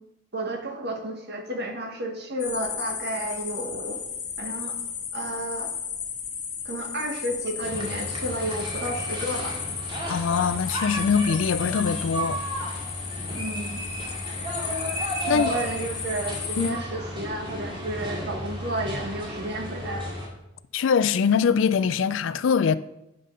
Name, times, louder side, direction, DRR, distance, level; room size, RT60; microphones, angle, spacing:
voice 1, 0.3-4.0 4.4-4.8 5.1-5.7 6.6-9.6 13.3-13.8 15.3-20.1, right 1 dB, 55° right, 1.6 m, -32 dB
sound 1, 2.4-16.7, left 7 dB, 40° left, 1.3 m, -34 dB
sound 2, 7.6-20.3, equal, 25° right, 2.0 m, -33 dB
voice 2, 10.1-12.4 15.3-15.5 16.6-16.8 20.7-22.8, left 6 dB, 70° left, 0.4 m, -23 dB
9.4 x 5.3 x 5.5 m
head